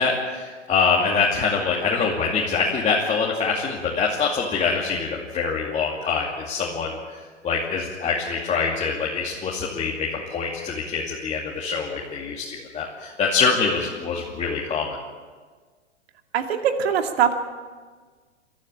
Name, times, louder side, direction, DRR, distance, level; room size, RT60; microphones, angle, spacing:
voice 1, 0.0-7.0 7.4-15.0, left 5 dB, 20° left, -3 dB, 2.5 m, -24 dB
voice 2, 16.3-17.3, right 8 dB, 55° right, 5 dB, 2.4 m, -22 dB
23.0 x 13.5 x 8.7 m, 1.5 s
figure-of-eight pair, 110°, 36 cm